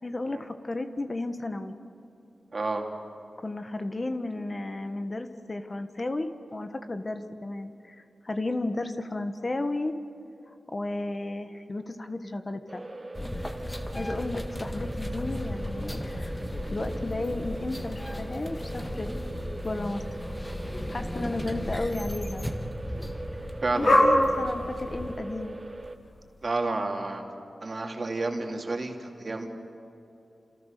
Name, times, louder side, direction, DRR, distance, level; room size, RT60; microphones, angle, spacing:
voice 1, 0.0-1.7 3.4-8.0 8.2-9.9 10.5-12.8 13.7-16.4 16.7-19.1 19.6-20.0 20.9-22.4 23.7-25.5, left 2 dB, 35° left, 7 dB, 1.4 m, -33 dB
voice 2, 2.5-2.9 23.6-24.1 26.4-27.2 27.6-29.5, right 2 dB, 45° right, 2 dB, 3.1 m, -30 dB
sound 1, 12.7-26.0, right 2 dB, 30° right, 1.4 m, -41 dB
sound 2, 13.1-25.1, left 1 dB, 15° left, 1.9 m, -36 dB
sound 3, 15.7-26.4, left 1 dB, 50° left, 5.8 m, -32 dB
29.5 x 28.0 x 6.8 m, 2.7 s
wide cardioid pair, 80°, 0 cm